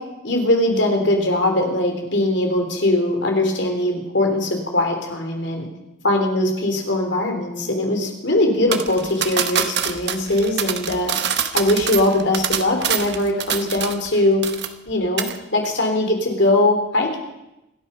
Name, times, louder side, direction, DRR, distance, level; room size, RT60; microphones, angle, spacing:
voice 1, 0.2-5.7 6.0-11.1 11.5-14.4 14.9-17.2, left 1 dB, 60° left, 3 dB, 3.4 m, -21 dB
sound 1, 8.7-14.1 14.4-14.9 15.2-15.4, right 8 dB, 55° right, 1.0 m, -25 dB
26.5 x 9.2 x 5.6 m, 0.92 s
head